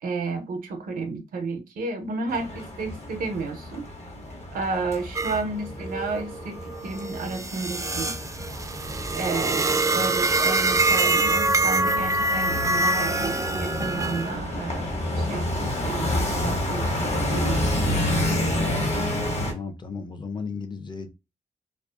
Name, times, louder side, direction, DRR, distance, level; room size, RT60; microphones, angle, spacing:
voice 1, 0.0-3.9 4.5-8.2 9.1-17.6 18.1-18.2, right 3 dB, 85° right, 0.6 m, -32 dB
sound 1, 2.3-19.5, left 1 dB, 50° left, 1.2 m, -29 dB
sound 2, 5.1-5.4 5.8-14.4, right 2 dB, 20° right, 0.3 m, -25 dB
voice 2, 19.4-21.1, left 5 dB, 30° left, 0.5 m, -35 dB
2.4 x 2.4 x 2.3 m
cardioid pair, 60°, 14 cm